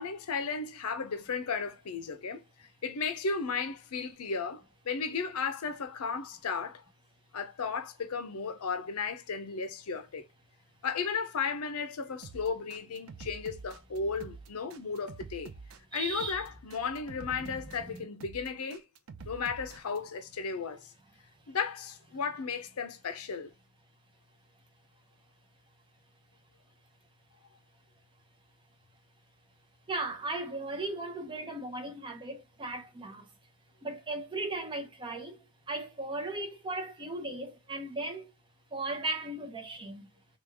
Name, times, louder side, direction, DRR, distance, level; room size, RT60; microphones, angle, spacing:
voice 1, 0.0-6.8 7.3-10.3 10.8-15.5 15.9-18.8 19.2-20.9 21.5-23.5, left 5 dB, 75° left, 0.6 m, -35 dB
sound 1, 12.2-20.0, right 4 dB, 65° right, 0.5 m, -47 dB
voice 2, 15.9-16.4 17.4-17.5 17.9-18.0 29.9-33.3 33.8-35.4 35.7-38.3 38.7-40.1, right 2 dB, 20° right, 0.6 m, -37 dB
3.1 x 2.3 x 3.4 m
head